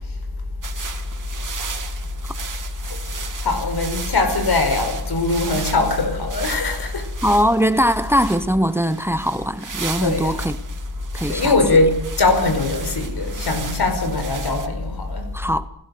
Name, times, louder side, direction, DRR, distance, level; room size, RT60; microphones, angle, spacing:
sound 1, 0.6-14.7, right 5 dB, 55° right, 2.3 m, -36 dB
voice 1, 2.9-7.1 10.0-10.4 11.3-15.3, left 3 dB, 90° left, 5.2 m, -21 dB
voice 2, 7.2-10.6 11.1-11.5 15.3-15.7, equal, 5° right, 0.8 m, -20 dB
29.5 x 16.5 x 6.6 m
wide cardioid pair, 120°, 38 cm